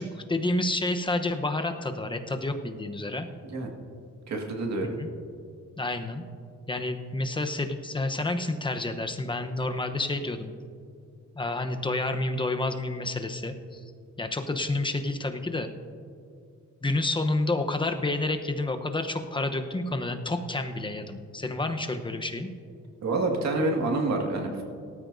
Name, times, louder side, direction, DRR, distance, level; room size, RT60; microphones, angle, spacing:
voice 1, 0.0-3.3 5.0-5.1 5.8-6.2 6.7-10.5 11.3-13.8 14.2-15.7 16.8-22.5, left 2 dB, 15° left, 6 dB, 0.9 m, -29 dB
voice 2, 4.3-5.0 23.0-24.6, right 2 dB, 65° right, 1 dB, 2.0 m, -27 dB
18.0 x 13.0 x 2.7 m, 2.3 s
cardioid pair, 90°, 30 cm